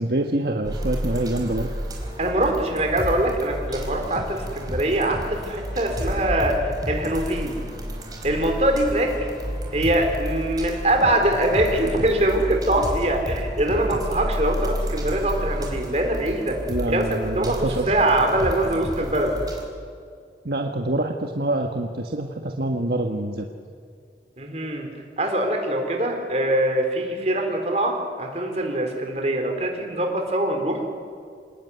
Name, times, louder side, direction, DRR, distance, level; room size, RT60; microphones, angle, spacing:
voice 1, 0.0-1.7 16.7-17.9 20.4-23.5, right 1 dB, 65° right, 3 dB, 1.4 m, -26 dB
sound 1, 0.6-19.6, equal, 20° right, 4.3 m, -31 dB
voice 2, 2.2-6.6 6.9-7.6 8.2-9.1 9.7-16.6 16.9-19.4 24.4-24.9 25.2-30.8, right 1 dB, 40° right, 3 dB, 4.2 m, -23 dB
27.0 x 19.5 x 9.6 m, 2.3 s
head